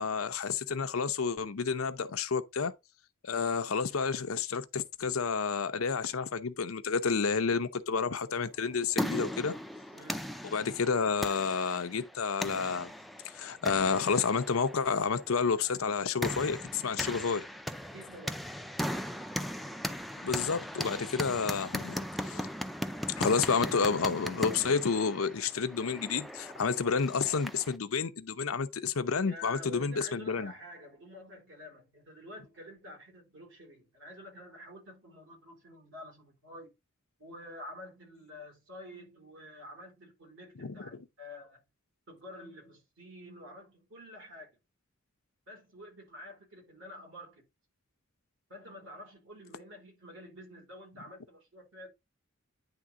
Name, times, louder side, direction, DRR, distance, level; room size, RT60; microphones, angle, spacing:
voice 1, 0.0-2.7 3.2-9.5 10.4-12.9 13.2-17.4 20.2-22.5 23.2-30.5 40.6-40.8, left 5 dB, 85° left, 0.7 m, -30 dB
sound 1, 8.5-27.8, equal, ahead, 0.4 m, -38 dB
voice 2, 9.9-10.4 17.8-18.5 29.2-36.7 37.2-41.6 42.1-44.5 45.5-47.5 48.5-51.9, left 1 dB, 65° right, 4.3 m, -49 dB
9.8 x 3.6 x 3.6 m
head